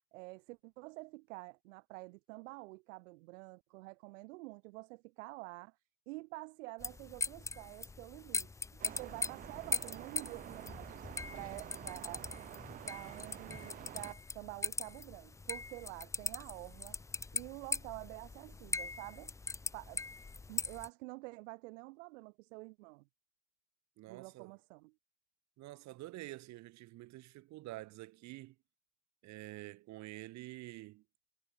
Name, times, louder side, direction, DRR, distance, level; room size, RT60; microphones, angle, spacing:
voice 1, 0.1-5.8 6.1-10.9 11.3-12.3 12.8-17.0 17.3-19.3 19.7-20.0 20.5-23.0 24.1-24.9, right 24 dB, 70° right, 1.1 m, -48 dB
sound 1, 6.8-20.9, left 3 dB, 10° left, 0.7 m, -41 dB
sound 2, 8.8-14.1, right 12 dB, 20° right, 0.5 m, -49 dB
voice 2, 24.0-24.5 25.6-28.6 29.2-31.0, right 17 dB, 45° right, 5.3 m, -48 dB
supercardioid pair, 140°, 39 cm